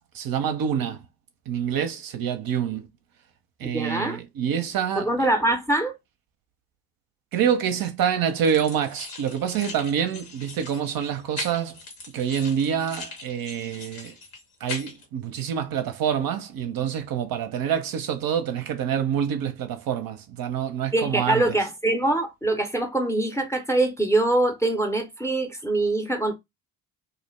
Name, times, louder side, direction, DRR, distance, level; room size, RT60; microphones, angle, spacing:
voice 1, 0.1-1.0 1.5-2.9 3.6-5.1 7.3-11.8 12.1-14.2 14.6-21.6, right 8 dB, 45° right, 0.6 m, -26 dB
voice 2, 3.6-4.2 5.0-6.0 20.9-26.4, right 2 dB, 5° left, 0.6 m, -24 dB
sound 1, 8.4-15.1, left 4 dB, 65° left, 1.2 m, -40 dB
2.5 x 2.0 x 3.0 m
hypercardioid pair, 50°, 49 cm